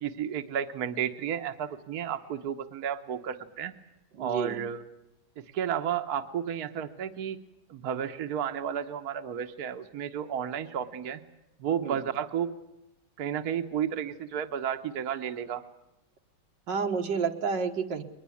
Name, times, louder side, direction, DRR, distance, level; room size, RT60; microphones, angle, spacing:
voice 1, 0.0-3.8 4.2-4.8 5.4-7.4 7.7-11.2 11.6-12.6 13.2-15.6, right 8 dB, 60° right, 7 dB, 1.5 m, -32 dB
voice 2, 4.1-4.6 11.8-12.0 16.7-18.0, right 5 dB, 85° right, 5 dB, 2.2 m, -30 dB
22.5 x 21.0 x 8.4 m, 0.89 s
omnidirectional pair, 1.9 m